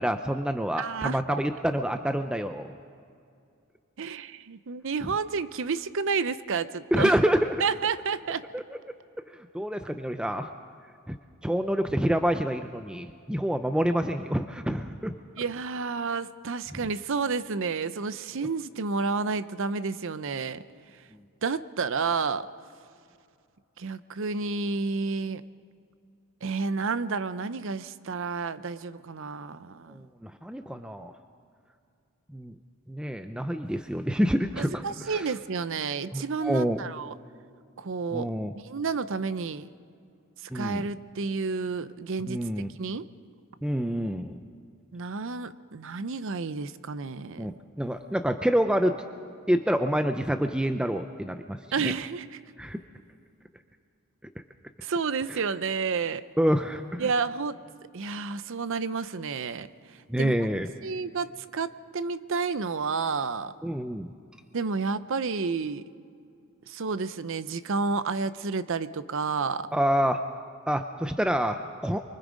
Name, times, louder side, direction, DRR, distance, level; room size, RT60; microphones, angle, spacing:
voice 1, 0.0-2.7 6.9-7.6 8.5-8.6 9.5-10.5 11.1-11.2 11.4-15.2 29.9-31.1 32.3-32.5 32.9-35.3 36.1-36.8 38.1-38.5 40.5-40.8 42.3-42.7 43.6-44.4 47.4-49.0 49.5-51.9 52.6-52.8 55.3-55.4 56.4-57.1 60.1-60.7 63.6-64.1 69.7-70.2 70.7-72.0, equal, 5° right, 7 dB, 0.4 m, -27 dB
voice 2, 0.8-1.4 4.0-7.2 7.6-8.4 15.4-20.6 21.4-22.5 23.8-25.4 26.4-30.0 34.6-37.1 37.8-39.7 40.4-42.4 42.8-43.1 44.9-47.5 51.7-52.4 54.8-56.2 57.0-57.6 57.9-59.7 60.2-60.3 60.8-63.5 64.5-65.8 66.7-69.7, right 4 dB, 60° right, 14 dB, 0.6 m, -30 dB
24.0 x 23.0 x 5.1 m, 2.4 s
head